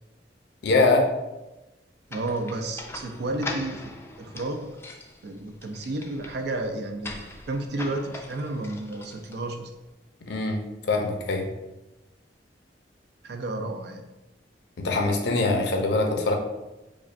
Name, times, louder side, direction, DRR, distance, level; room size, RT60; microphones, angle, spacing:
voice 1, 0.6-1.1 10.3-11.5 14.8-16.3, left 3 dB, 70° left, 2 dB, 0.6 m, -23 dB
sound 1, 2.1-9.7, left 2 dB, 15° left, 0.3 m, -41 dB
voice 2, 2.1-4.7 5.2-7.2 7.5-9.7 13.2-14.0, right 2 dB, 65° right, 5 dB, 0.4 m, -31 dB
4.9 x 2.2 x 2.5 m, 1.0 s
head